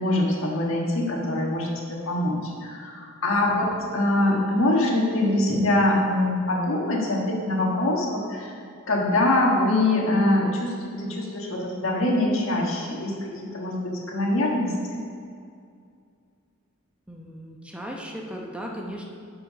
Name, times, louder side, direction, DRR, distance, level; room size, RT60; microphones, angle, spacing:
voice 1, 0.0-8.5 8.9-15.0, left 1 dB, 75° left, -1 dB, 1.6 m, -24 dB
voice 2, 3.3-3.7 17.1-19.1, equal, 5° right, -1 dB, 0.8 m, -37 dB
11.5 x 4.8 x 5.1 m, 2.3 s
head